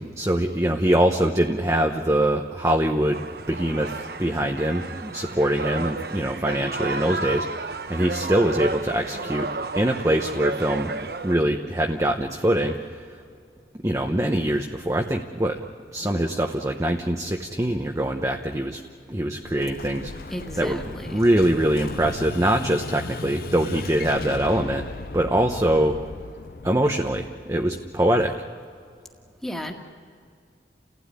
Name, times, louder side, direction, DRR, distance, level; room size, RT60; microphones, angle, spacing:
voice 1, 0.0-7.6 7.9-9.5 9.8-10.9 11.2-13.0 13.8-15.6 15.9-18.8 19.1-20.1 20.6-20.8 21.1-24.8 25.1-26.0 26.6-28.3, right 1 dB, 15° right, 3 dB, 0.9 m, -23 dB
sound 1, 3.1-11.3, right 3 dB, 60° right, 1.0 m, -32 dB
Explosion, 19.4-28.1, left 3 dB, 55° left, 0.5 m, -37 dB
voice 2, 20.3-21.2 29.4-29.7, equal, ahead, 2 dB, 1.9 m, -34 dB
29.5 x 16.5 x 9.8 m, 2.3 s
head